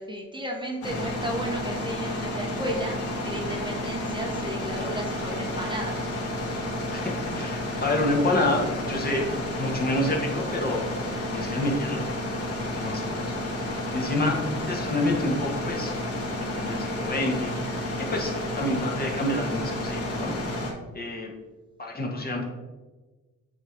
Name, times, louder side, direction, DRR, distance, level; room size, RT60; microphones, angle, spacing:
voice 1, 0.0-6.0, right 1 dB, 15° right, 0 dB, 1.0 m, -34 dB
sound 1, 0.8-20.7, left 1 dB, 50° left, 1.8 m, -31 dB
voice 2, 6.9-12.1 12.6-15.9 16.3-20.6 20.9-21.3 21.8-22.5, left 1 dB, 30° left, -1 dB, 1.5 m, -29 dB
8.8 x 3.1 x 3.8 m, 1.3 s
cardioid pair, 90°, 30 cm